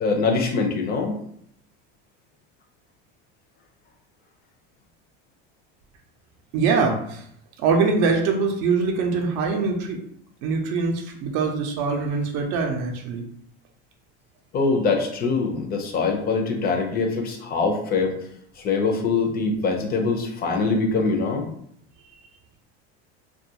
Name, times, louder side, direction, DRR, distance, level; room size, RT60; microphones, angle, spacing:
voice 1, 0.0-1.1 14.5-18.1 18.6-21.5, left 4 dB, 30° left, 3 dB, 0.5 m, -23 dB
voice 2, 6.5-7.2 7.6-10.0 10.4-13.2, right 4 dB, 60° right, 2 dB, 0.5 m, -23 dB
2.4 x 2.2 x 2.7 m, 0.69 s
supercardioid pair, 120°, 31 cm